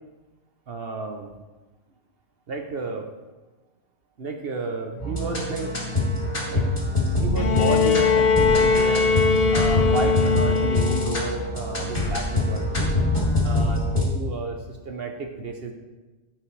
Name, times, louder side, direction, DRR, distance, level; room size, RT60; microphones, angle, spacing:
voice 1, 0.7-1.3 2.5-3.1 4.2-5.7 6.4-6.6 7.2-9.1 9.5-12.9 13.4-15.7, right 3 dB, 55° right, 4 dB, 1.0 m, -31 dB
sound 1, 5.0-14.0, left 2 dB, 35° left, 2.9 m, -24 dB
Bowed string instrument, 7.4-11.4 12.6-12.7, left 5 dB, 60° left, 0.8 m, -21 dB
15.5 x 6.0 x 3.3 m, 1.2 s
omnidirectional pair, 1.3 m